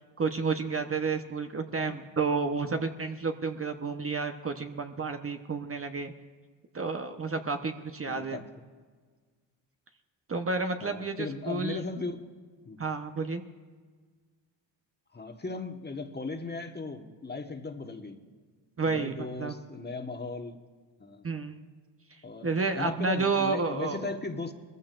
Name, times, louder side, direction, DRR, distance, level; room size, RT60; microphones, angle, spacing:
voice 1, 0.2-6.1 6.7-8.4 10.3-11.8 12.8-13.4 18.8-19.6 21.2-21.6 22.4-24.1, right 4 dB, 30° right, 6 dB, 1.0 m, -31 dB
voice 2, 8.1-8.4 10.8-12.3 12.6-12.8 15.1-18.2 18.8-20.6 21.0-21.2 22.2-24.5, left 3 dB, 20° left, 5 dB, 1.4 m, -37 dB
21.0 x 15.0 x 2.6 m, 1.5 s
supercardioid pair, 65°, 45 cm